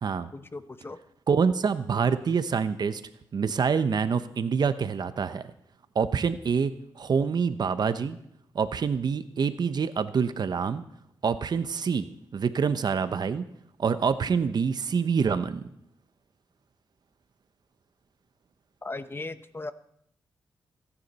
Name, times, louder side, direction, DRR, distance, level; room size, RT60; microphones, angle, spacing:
voice 1, 0.3-1.0 18.8-19.7, left 3 dB, 30° left, 12 dB, 0.9 m, -37 dB
voice 2, 1.3-3.0 3.3-5.4 5.9-8.2 8.5-10.8 11.2-13.4 13.8-15.6, right 6 dB, 60° right, 12 dB, 0.8 m, -26 dB
23.0 x 9.9 x 4.2 m, 0.72 s
cardioid pair, 70°, 8 cm